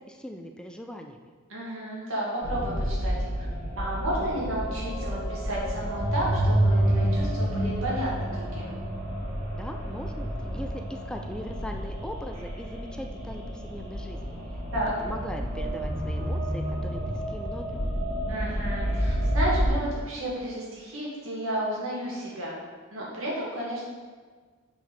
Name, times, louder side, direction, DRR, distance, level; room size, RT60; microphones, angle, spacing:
voice 1, 0.1-1.3 9.5-14.4 15.0-17.8, equal, 5° left, 4 dB, 0.3 m, -40 dB
voice 2, 1.5-3.5 3.8-8.7 14.7-14.9 18.3-22.5 22.9-23.8, right 1 dB, 85° right, -5 dB, 2.3 m, -32 dB
sound 1, 2.4-19.7, equal, 35° right, 1.9 m, -29 dB
6.2 x 4.9 x 5.3 m, 1.5 s
head